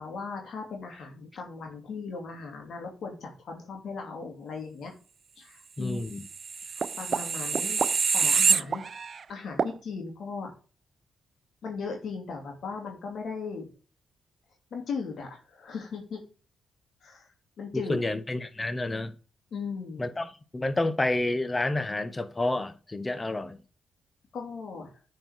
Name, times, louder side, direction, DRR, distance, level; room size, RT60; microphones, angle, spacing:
voice 1, 0.0-4.9 5.4-6.2 6.7-7.8 8.1-8.9 9.3-10.5 11.6-13.7 14.7-16.2 17.0-17.3 17.6-18.0 19.5-20.1 24.3-24.9, left 5 dB, 65° left, 2.5 m, -37 dB
voice 2, 5.8-6.2 17.7-19.1 20.0-20.3 20.5-23.6, left 2 dB, 25° left, 1.3 m, -29 dB
sound 1, 6.3-9.2 9.6-9.7, right 5 dB, 50° right, 0.4 m, -26 dB
10.5 x 4.6 x 4.8 m
hypercardioid pair, 45°, 0 cm